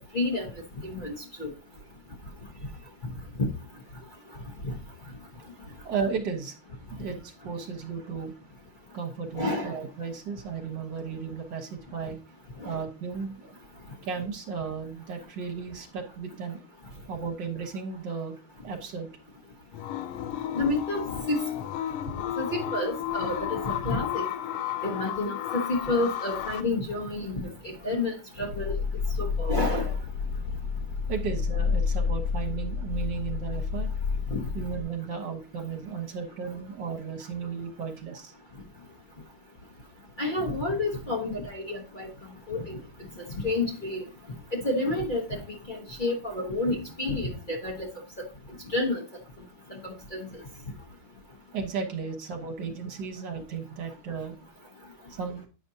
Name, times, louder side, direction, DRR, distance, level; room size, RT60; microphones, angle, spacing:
voice 1, 0.1-0.5 0.8-1.1 1.4-1.5 3.4-3.5 4.6-4.7 9.3-9.7 12.6-12.8 20.5-21.4 22.4-24.3 24.8-28.8 29.2-29.9 34.3-34.4 40.2-42.1 42.5-42.8 43.4-44.0 44.5-45.4 45.7-47.9 48.7-49.0 49.8-50.3, left 2 dB, 35° left, -1 dB, 0.8 m, -29 dB
voice 2, 5.9-6.6 6.9-8.3 8.9-12.2 12.6-13.6 14.0-16.6 17.1-18.4 18.6-19.1 31.1-33.9 34.5-38.3 51.5-54.4 55.1-55.4, right 5 dB, 60° right, 3 dB, 1.9 m, -34 dB
sound 1, 19.7-26.6, left 10 dB, 85° left, 1.5 m, -33 dB
sound 2, 28.5-34.8, left 5 dB, 65° left, 1.1 m, -29 dB
8.8 x 5.1 x 2.7 m, 0.32 s
omnidirectional pair, 2.3 m